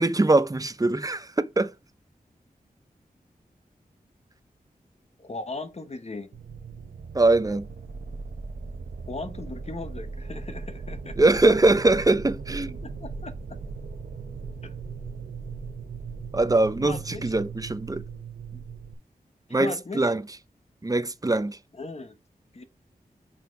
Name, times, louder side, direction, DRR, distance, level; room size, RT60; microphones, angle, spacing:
voice 1, 0.0-1.7 7.1-7.7 11.2-12.8 16.3-18.0 19.5-20.2 20.8-21.6, right 2 dB, 20° right, 0.7 m, -22 dB
voice 2, 5.2-6.4 9.1-11.2 12.8-13.6 14.6-14.7 16.8-17.3 19.6-20.1 21.7-22.2 22.5-22.6, left 3 dB, 45° left, 1.2 m, -37 dB
sound 1, 6.3-18.9, right 5 dB, 85° right, 1.0 m, -38 dB
5.9 x 4.4 x 4.7 m
cardioid pair, 55°, 16 cm